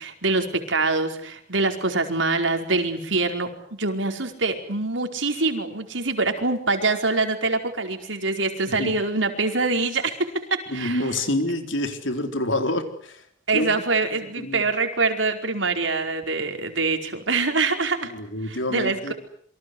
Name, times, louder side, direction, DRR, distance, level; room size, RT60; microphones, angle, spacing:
voice 1, 0.0-11.0 13.5-18.1 18.5-19.1, right 3 dB, 80° right, 5 dB, 4.8 m, -24 dB
voice 2, 10.7-13.2 13.5-13.8 14.1-14.6 18.0-19.1, left 1 dB, 85° left, 7 dB, 4.2 m, -27 dB
28.0 x 24.0 x 8.0 m, 0.63 s
head